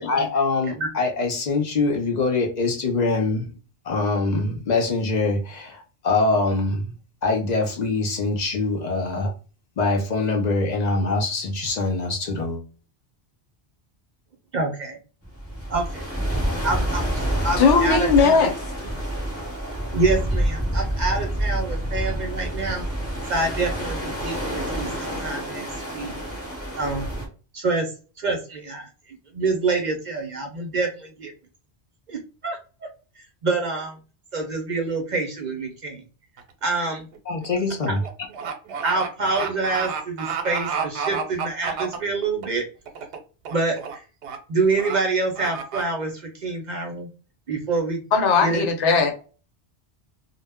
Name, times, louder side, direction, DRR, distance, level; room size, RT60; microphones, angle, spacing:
voice 1, 0.0-3.5 3.8-6.9 7.2-9.3 9.8-12.6 37.3-38.0, left 3 dB, 55° left, 0.5 m, -24 dB
voice 2, 14.5-15.0 15.7-16.0 16.6-18.5 19.9-22.8 23.3-25.7 25.9-26.1 26.8-27.1 27.5-27.9 28.2-31.3 32.1-32.6 33.4-34.0 34.3-36.0 36.6-37.1 37.9-38.0 38.8-42.6 43.5-44.0 44.5-47.1 47.5-48.0 48.4-48.7, right 3 dB, 55° right, 0.6 m, -26 dB
sound 1, 15.2-27.3, right 1 dB, 15° left, 0.8 m, -28 dB
voice 3, 17.6-18.5 48.1-49.2, left 5 dB, 90° left, 0.9 m, -18 dB
sound 2, 36.4-36.6 37.0-42.4 42.9-43.2 43.4-43.9 44.2-44.4 44.8-44.9 45.3-45.8, right 6 dB, 85° right, 0.9 m, -30 dB
2.0 x 2.0 x 3.4 m
omnidirectional pair, 1.1 m